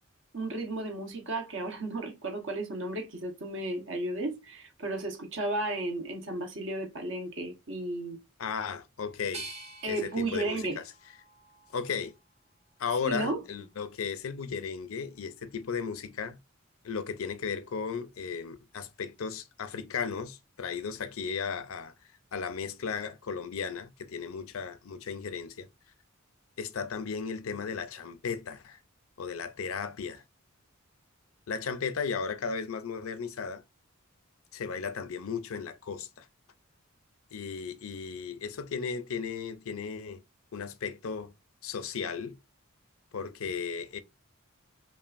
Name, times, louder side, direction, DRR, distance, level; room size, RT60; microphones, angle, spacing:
voice 1, 0.3-8.2 9.8-10.8 13.0-13.4, right 2 dB, 60° right, 1.1 m, -34 dB
voice 2, 8.4-9.5 9.9-10.8 11.7-12.1 12.8-16.4 16.8-21.9 22.3-25.7 26.6-28.8 29.2-30.2 31.5-33.6 34.5-36.3 37.3-40.2 40.5-41.3 41.6-42.4 43.1-44.0, left 6 dB, 75° left, 0.5 m, -35 dB
sound 1, 9.3-12.3 12.8-13.6, right 3 dB, 30° right, 0.8 m, -48 dB
5.3 x 2.5 x 2.5 m
head